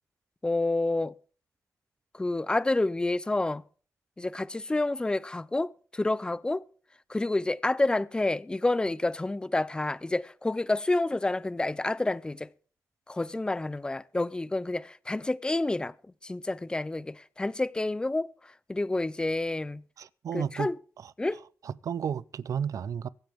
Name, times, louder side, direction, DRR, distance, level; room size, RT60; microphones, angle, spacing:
voice 1, 0.4-1.1 2.1-3.6 4.2-6.6 7.1-12.5 13.1-15.9 16.2-18.3 18.7-19.8 20.3-20.8 21.2-21.4, left 2 dB, 15° left, 0.5 m, -29 dB
voice 2, 20.0-20.7 21.6-23.1, right 8 dB, 70° right, 0.5 m, -32 dB
23.5 x 9.0 x 3.6 m
cardioid pair, 100°, 6 cm